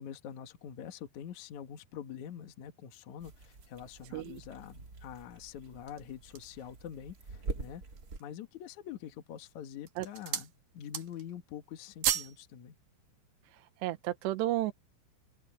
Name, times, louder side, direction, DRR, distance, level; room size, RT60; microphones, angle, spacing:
voice 1, 0.0-7.8 8.2-12.8, left 9 dB, 65° left, 1.9 m, -45 dB
sound 1, 3.2-8.2, right 3 dB, 35° right, 1.6 m, -45 dB
sound 2, 5.7-6.7 7.3-7.4 7.8-8.4 9.1-9.4 9.8-10.5 10.8-11.3 11.6-12.4 12.7-12.9, right 11 dB, 60° right, 2.6 m, -35 dB
voice 2, 13.8-14.7, right 15 dB, 75° right, 2.9 m, -32 dB
open air
omnidirectional pair, 5.6 m